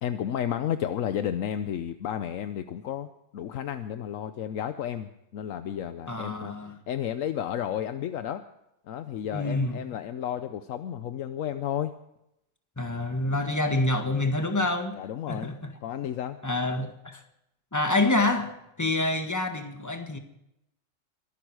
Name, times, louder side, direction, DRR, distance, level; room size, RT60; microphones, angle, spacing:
voice 1, 0.0-6.5 6.9-8.4 8.9-11.9 14.9-15.5 15.8-16.4, left 10 dB, 80° left, 10 dB, 1.1 m, -32 dB
voice 2, 6.1-6.7 9.3-9.8 12.8-14.9 15.3-15.7 16.4-17.2 17.7-20.2, left 2 dB, 15° left, 5 dB, 1.5 m, -27 dB
23.0 x 11.0 x 4.8 m, 0.84 s
omnidirectional pair, 1.4 m